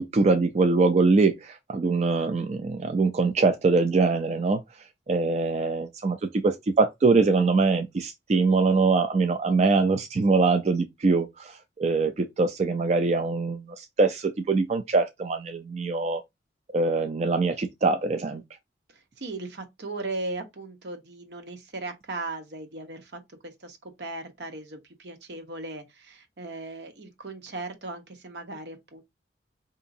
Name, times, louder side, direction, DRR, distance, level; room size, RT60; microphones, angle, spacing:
voice 1, 0.0-4.6 5.1-11.5 11.8-16.2 16.7-18.4, right 3 dB, 40° right, 0.3 m, -23 dB
voice 2, 18.9-29.0, right 2 dB, 70° right, 0.9 m, -37 dB
4.7 x 2.7 x 2.6 m
head